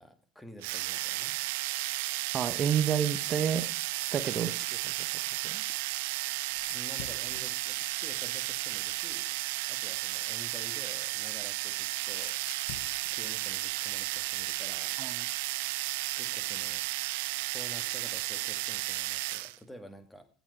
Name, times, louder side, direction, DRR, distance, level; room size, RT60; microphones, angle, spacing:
voice 1, 0.0-1.4 6.7-9.3 9.7-12.4 13.1-15.0 16.2-20.3, equal, 10° left, 10 dB, 1.9 m, -50 dB
sound 1, 0.6-19.6, right 20 dB, 60° right, 0.5 m, -33 dB
voice 2, 2.3-3.7 4.1-5.6 15.0-15.3, right 8 dB, 35° right, 12 dB, 0.8 m, -31 dB
Fire, 6.5-9.3 10.4-14.6, left 12 dB, 60° left, 0.8 m, -51 dB
16.0 x 7.2 x 4.3 m, 0.42 s
figure-of-eight pair, 65°, 0 cm